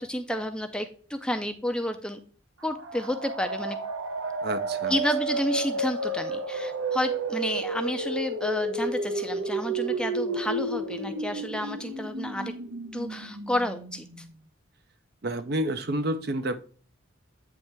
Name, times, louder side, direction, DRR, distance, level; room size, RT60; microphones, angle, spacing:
voice 1, 0.0-2.2 2.6-3.8 4.9-12.5 12.9-14.3, left 1 dB, 5° left, 0.4 m, -30 dB
sound 1, 2.6-14.3, right 2 dB, 80° right, 0.9 m, -32 dB
voice 2, 4.4-5.0 15.2-16.6, right 1 dB, 50° right, 0.5 m, -29 dB
8.7 x 3.2 x 4.5 m
head